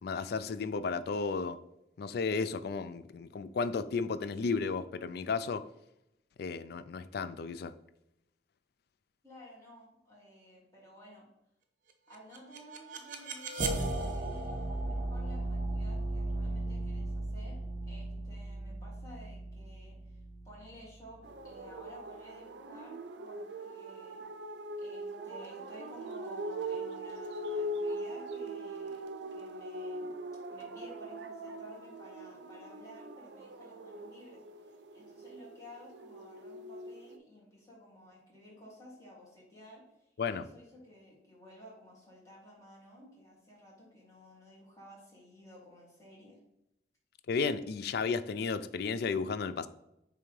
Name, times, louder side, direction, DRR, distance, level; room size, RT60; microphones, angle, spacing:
voice 1, 0.0-1.6 2.0-5.7 6.4-7.7 40.2-40.4 47.3-49.7, left 4 dB, 60° left, 13 dB, 0.3 m, -33 dB
voice 2, 9.2-11.3 12.1-17.6 17.9-24.2 24.8-29.0 29.3-30.1 30.5-46.4, equal, 20° left, -6 dB, 2.3 m, -54 dB
sound 1, 12.1-21.1, right 2 dB, 50° right, 0.8 m, -36 dB
sound 2, 21.2-37.2, right 1 dB, 75° right, 0.5 m, -41 dB
8.7 x 3.4 x 3.2 m, 0.84 s
head